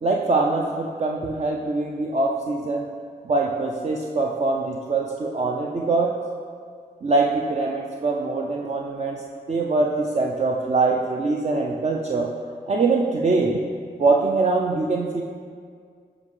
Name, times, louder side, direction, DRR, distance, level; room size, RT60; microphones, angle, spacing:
voice 1, 0.0-2.9 3.2-6.1 7.0-9.2 9.5-12.3 12.7-13.6 14.0-15.2, right 3 dB, 35° right, -1 dB, 0.5 m, -23 dB
7.3 x 4.9 x 3.2 m, 2.1 s
supercardioid pair, 40°, 18 cm